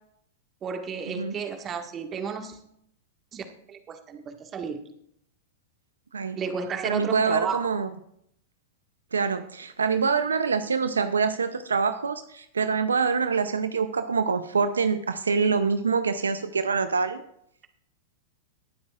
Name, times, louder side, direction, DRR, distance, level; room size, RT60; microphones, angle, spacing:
voice 1, 0.6-2.6 3.3-4.8 6.3-7.7, right 6 dB, 30° right, 5 dB, 1.6 m, -32 dB
voice 2, 6.8-7.9 9.1-17.2, right 5 dB, 90° right, 10 dB, 0.6 m, -25 dB
20.0 x 9.4 x 2.4 m, 0.72 s
hypercardioid pair, 105°, 0 cm